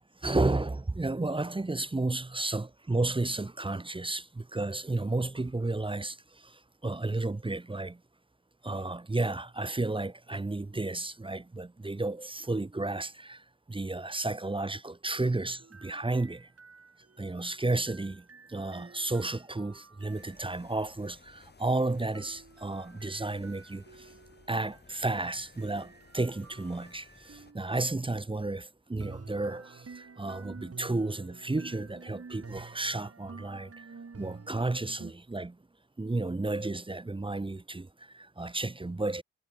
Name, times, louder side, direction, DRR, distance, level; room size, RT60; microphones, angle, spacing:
voice 1, 0.2-8.0 8.6-16.5 17.2-24.1 24.5-33.9 34.2-35.6 36.0-39.2, right 2 dB, 15° right, 1.0 m, -32 dB
sound 1, 15.6-20.9 22.1-27.9 29.0-35.1, right 4 dB, 35° right, 5.7 m, -51 dB
sound 2, 20.1-27.5, left 4 dB, 25° left, 1.7 m, -58 dB
supercardioid pair, 60°, 40 cm